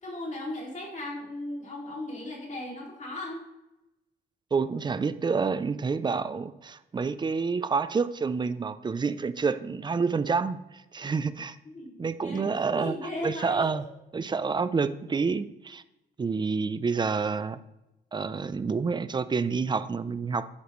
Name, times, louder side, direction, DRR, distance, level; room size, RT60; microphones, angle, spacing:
voice 1, 0.0-3.4 11.6-13.8, left 1 dB, 35° left, -2 dB, 2.4 m, -37 dB
voice 2, 4.5-10.6 10.9-11.6 12.0-12.9 13.2-13.8 14.1-15.8 16.2-17.6 18.1-20.5, right 5 dB, 20° right, 13 dB, 0.4 m, -28 dB
8.1 x 5.0 x 3.1 m, 0.94 s
cardioid pair, 90°, 20 cm